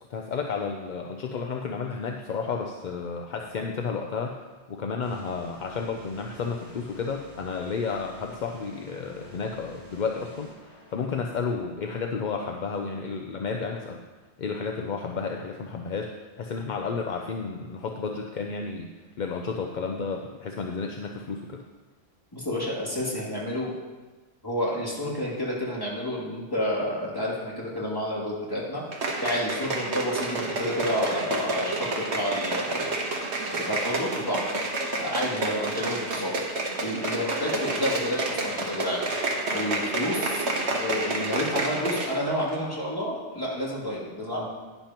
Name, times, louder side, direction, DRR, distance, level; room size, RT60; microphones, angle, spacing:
voice 1, 0.1-14.0 14.4-18.9 19.2-21.6, left 5 dB, 50° left, 3 dB, 0.6 m, -32 dB
sound 1, 5.0-11.5, equal, 45° right, 3.7 m, -49 dB
voice 2, 22.3-23.7 24.4-28.8 29.2-32.9 33.5-34.4 35.0-36.3 36.8-39.0 39.5-40.4 40.8-44.5, equal, 20° left, -6 dB, 2.6 m, -30 dB
sound 2, 28.9-42.2 42.5-42.6, right 2 dB, 65° right, 1.5 m, -29 dB
11.0 x 10.0 x 3.0 m, 1.3 s
omnidirectional pair, 1.3 m